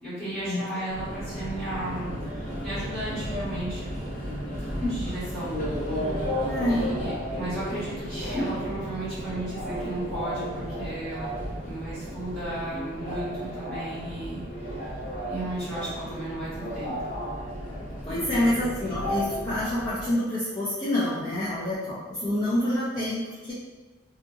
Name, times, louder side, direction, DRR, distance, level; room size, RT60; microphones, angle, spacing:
voice 1, 0.0-3.9 4.8-5.6 6.7-11.3 11.6-14.8 15.3-17.1 18.1-18.4, right 1 dB, 5° left, -14 dB, 1.5 m, -34 dB
Subway metro underground, 0.9-20.1, equal, 45° left, 0.9 m, -33 dB
voice 2, 6.4-7.0 18.1-23.5, left 1 dB, 20° left, -10 dB, 0.5 m, -27 dB
2.7 x 2.6 x 2.4 m, 1.3 s
head